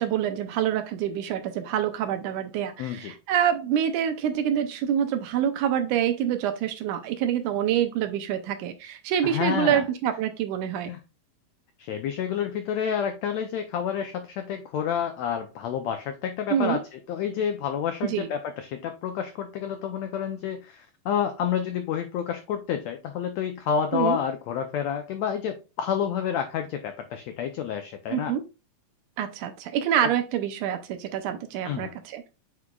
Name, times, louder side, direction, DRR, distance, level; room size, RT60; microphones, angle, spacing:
voice 1, 0.0-10.9 16.5-16.8 18.0-18.3 23.9-24.2 28.1-28.4 29.2-32.3, right 10 dB, 80° right, 8 dB, 1.9 m, -26 dB
voice 2, 2.8-3.1 9.2-9.8 10.9-11.0 11.8-28.3 30.0-30.1 31.6-31.9, left 8 dB, 90° left, 6 dB, 1.5 m, -29 dB
8.3 x 4.9 x 2.3 m, 0.31 s
omnidirectional pair, 3.9 m